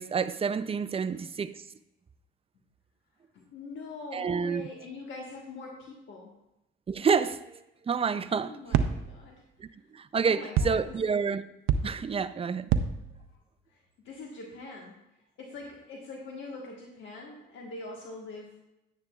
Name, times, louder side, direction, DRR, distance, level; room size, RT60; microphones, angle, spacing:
voice 1, 0.0-1.6 4.1-4.6 6.9-7.6 7.9-8.6 9.6-11.4 11.8-12.7, right 6 dB, 30° right, 0.5 m, -29 dB
voice 2, 3.3-6.3 8.4-9.4 10.2-10.8 13.7-15.0 15.4-18.7, left 3 dB, 75° left, 1.4 m, -43 dB
sound 1, 8.7-9.3 10.6-11.0 11.7-12.2 12.7-13.3, right 7 dB, 90° right, 0.5 m, -28 dB
10.0 x 9.7 x 2.4 m
cardioid pair, 90°, 20 cm